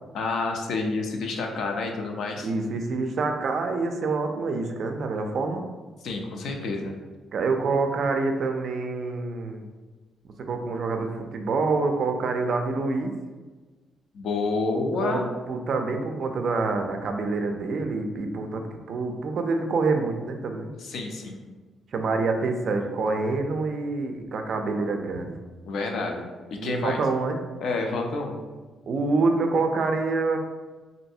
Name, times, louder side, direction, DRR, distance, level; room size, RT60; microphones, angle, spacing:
voice 1, 0.1-2.5 6.0-6.9 14.1-15.3 20.8-21.4 25.7-26.2 26.5-27.0 27.6-28.4, left 3 dB, 65° left, 2 dB, 0.4 m, -29 dB
voice 2, 2.4-5.6 7.3-9.7 10.5-13.1 14.7-15.2 15.5-18.6 18.9-20.7 21.9-25.3 26.6-27.4 28.9-30.4, right 3 dB, 50° right, 5 dB, 0.3 m, -26 dB
3.1 x 2.5 x 2.7 m, 1.3 s
cardioid pair, 150°, 0 cm